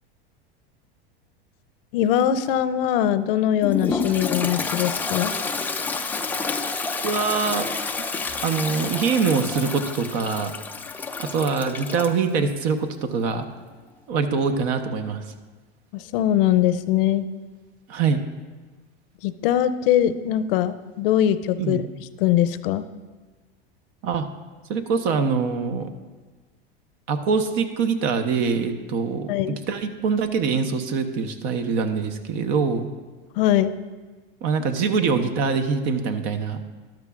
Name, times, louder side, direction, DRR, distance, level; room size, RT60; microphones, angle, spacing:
voice 1, 1.9-5.3 15.9-17.3 19.2-21.8 22.2-22.9 29.3-29.6 33.4-33.8, left 11 dB, 65° left, 13 dB, 0.6 m, -21 dB
Toilet flush, 3.6-12.2, left 4 dB, 5° left, 0.3 m, -29 dB
voice 2, 7.0-7.7 8.4-10.5 11.2-13.5 14.1-15.3 17.9-18.2 21.6-21.9 24.0-24.3 24.7-25.9 27.1-32.9 34.4-36.6, right 5 dB, 55° right, 8 dB, 1.0 m, -24 dB
13.0 x 12.0 x 2.5 m, 1.3 s
supercardioid pair, 130°, 30 cm